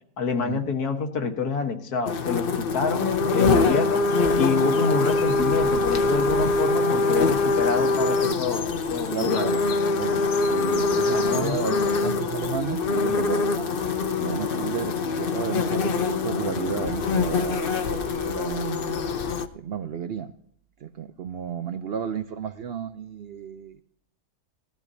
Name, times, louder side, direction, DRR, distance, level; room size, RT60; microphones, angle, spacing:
voice 1, 0.2-4.0 4.4-9.5 11.1-11.8, left 5 dB, 75° left, 5 dB, 1.8 m, -27 dB
sound 1, 2.1-19.5, left 3 dB, 50° left, 0.7 m, -24 dB
voice 2, 9.1-9.7 9.9-13.8 14.2-19.1 19.5-20.3 20.8-23.8, right 8 dB, 75° right, 10 dB, 0.5 m, -33 dB
17.0 x 12.5 x 2.7 m, 0.63 s
omnidirectional pair, 1.7 m